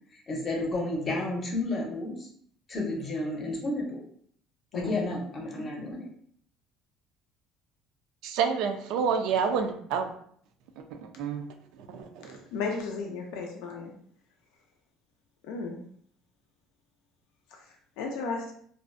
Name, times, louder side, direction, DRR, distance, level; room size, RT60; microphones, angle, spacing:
voice 1, 0.1-2.3 2.7-4.0 4.7-6.1, left 2 dB, 35° left, -1 dB, 0.7 m, -31 dB
voice 2, 8.2-10.1 10.9-11.4 11.9-12.4, right 6 dB, 75° right, 6 dB, 0.3 m, -28 dB
voice 3, 12.5-13.9 15.5-15.8 18.0-18.5, left 4 dB, 85° left, 1 dB, 0.4 m, -33 dB
2.5 x 2.0 x 2.5 m, 0.62 s
cardioid pair, 125°, 0 cm